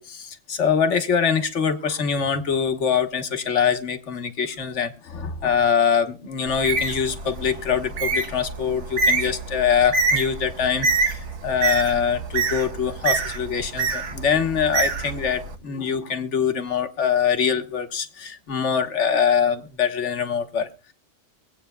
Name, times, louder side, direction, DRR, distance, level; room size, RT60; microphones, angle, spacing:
voice 1, 0.0-20.7, left 7 dB, 75° left, 7 dB, 1.5 m, -23 dB
Bird, 6.5-15.5, right 4 dB, 70° right, 1.3 m, -26 dB
24.0 x 8.5 x 2.2 m, 0.30 s
omnidirectional pair, 1.3 m